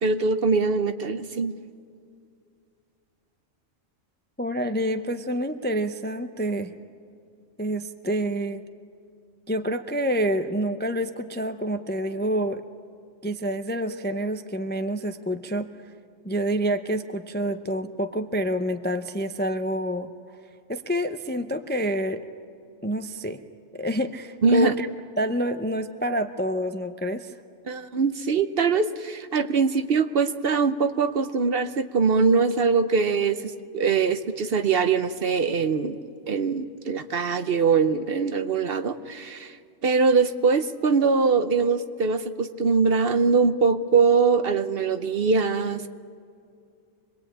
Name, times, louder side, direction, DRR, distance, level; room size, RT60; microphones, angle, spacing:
voice 1, 0.0-1.5 24.4-24.8 27.7-36.0 36.3-39.6 39.8-45.9, right 5 dB, 55° right, 10 dB, 0.9 m, -22 dB
voice 2, 4.4-6.7 7.6-8.6 9.5-12.6 13.2-15.7 16.2-20.1 20.7-22.2 22.8-23.4 23.7-24.9 25.2-27.3, equal, 15° left, 8 dB, 0.4 m, -27 dB
25.5 x 21.0 x 8.8 m, 2.3 s
omnidirectional pair, 1.3 m